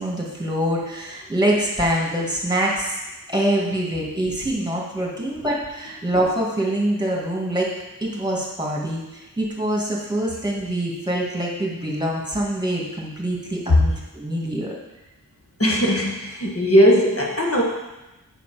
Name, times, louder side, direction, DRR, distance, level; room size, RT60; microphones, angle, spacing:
voice 1, 0.0-3.0 3.3-7.7 8.0-14.7, right 1 dB, 10° right, -3 dB, 2.1 m, -25 dB
voice 2, 15.6-17.6, equal, 40° left, -2 dB, 1.5 m, -18 dB
7.0 x 5.7 x 5.0 m, 1.0 s
wide cardioid pair, 55°, 36 cm